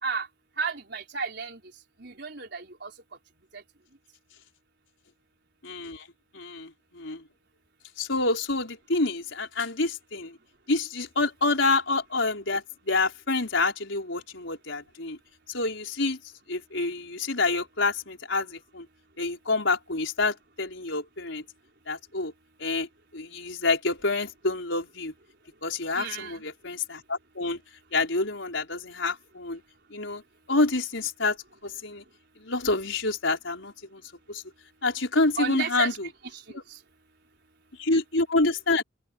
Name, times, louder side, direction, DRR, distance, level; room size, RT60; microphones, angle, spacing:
voice 1, 0.6-1.6 2.0-2.9 3.5-3.6 25.9-26.4 35.4-36.0 36.3-36.4 36.7-36.8, right 5 dB, 60° right, 4.9 m, -33 dB
voice 2, 5.6-6.1 6.3-7.2 8.0-10.4 10.7-15.2 15.5-16.2 16.5-18.9 19.2-21.4 21.9-22.3 22.6-25.1 25.6-27.6 27.9-29.6 29.9-30.2 30.5-31.4 31.6-32.0 32.4-34.0 34.3-34.4 34.8-36.1 36.5-36.6 37.8-38.8, left 3 dB, 75° left, 4.6 m, -27 dB
open air
head